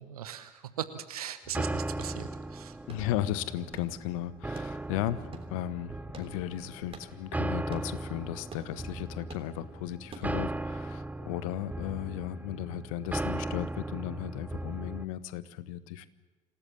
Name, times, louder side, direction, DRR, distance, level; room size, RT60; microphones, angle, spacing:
voice 1, 0.0-2.8, right 10 dB, 75° right, 11 dB, 1.0 m, -39 dB
sound 1, 1.5-15.0, right 2 dB, 10° right, 0.7 m, -37 dB
sound 2, 1.6-10.6, right 4 dB, 30° right, 3.4 m, -52 dB
voice 2, 2.9-16.1, left 13 dB, 65° left, 15 dB, 1.1 m, -35 dB
27.0 x 18.0 x 7.2 m, 1.2 s
figure-of-eight pair, 60°, 19 cm